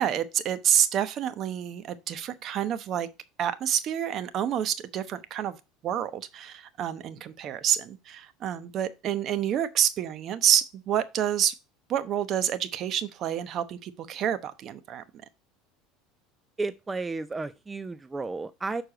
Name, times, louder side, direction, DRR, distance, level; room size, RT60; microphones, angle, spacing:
voice 1, 0.0-3.1 3.4-5.6 5.8-11.5 11.9-15.0, right 10 dB, 45° right, 0.9 m, -28 dB
voice 2, 16.6-18.8, right 3 dB, 15° right, 0.4 m, -33 dB
6.5 x 4.6 x 4.9 m
supercardioid pair, 110°, 0 cm